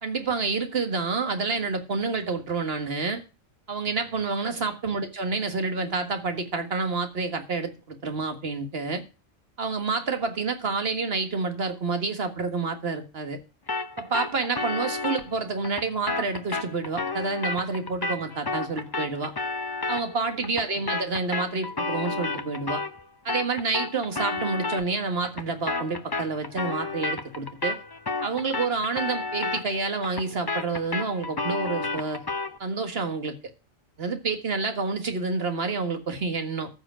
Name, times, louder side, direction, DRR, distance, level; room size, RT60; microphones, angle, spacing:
voice 1, 0.0-3.2 3.7-9.0 9.6-13.4 14.0-19.3 19.9-22.8 23.2-27.8 28.2-32.2 32.6-33.3 34.0-36.7, right 4 dB, 50° right, 1.9 m, -28 dB
sound 1, 13.7-23.0 23.3-32.6, left 3 dB, 25° left, 0.6 m, -32 dB
14.0 x 5.0 x 7.5 m
omnidirectional pair, 1.3 m